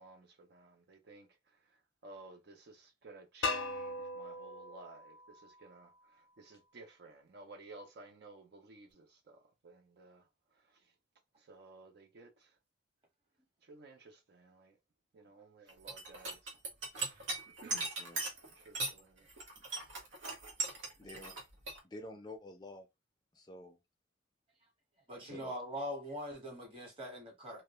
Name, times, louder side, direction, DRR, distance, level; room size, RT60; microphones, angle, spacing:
voice 1, 0.0-10.9 11.4-12.6 13.6-14.8 15.1-16.6 16.9-18.1 18.5-19.3 19.8-20.1 21.0-21.3 25.2-25.4, right 3 dB, 60° right, 0.4 m, -56 dB
sound 1, 3.4-6.3, left 3 dB, 80° left, 0.5 m, -40 dB
sound 2, 15.7-19.0 19.3-21.8, right 3 dB, 85° right, 0.9 m, -38 dB
voice 2, 21.0-21.4 21.8-22.9 23.3-23.8 25.2-25.5, left 1 dB, 20° left, 0.4 m, -49 dB
voice 3, 25.1-27.6, equal, 30° right, 1.1 m, -42 dB
2.2 x 2.1 x 2.9 m
head